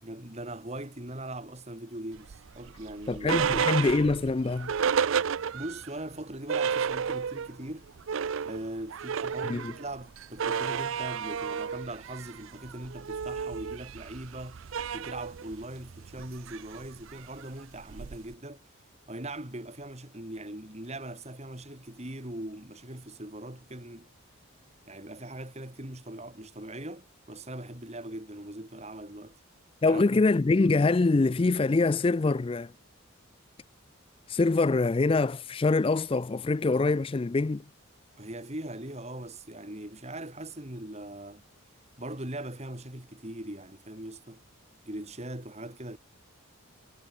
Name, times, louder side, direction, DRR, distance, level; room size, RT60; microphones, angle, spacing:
voice 1, 0.0-3.7 5.5-7.9 8.4-14.6 14.9-18.6 19.1-24.1 24.9-29.4 29.9-30.2 38.2-41.4 42.0-44.4 44.8-46.0, right 1 dB, 30° right, 2.9 m, -40 dB
sound 1, 2.3-5.9 6.2-6.3 6.5-7.6 7.9-18.3, right 7 dB, 65° right, 0.5 m, -32 dB
voice 2, 3.1-4.7 9.4-9.7 29.8-32.7 34.3-37.6, left 3 dB, 25° left, 0.3 m, -24 dB
head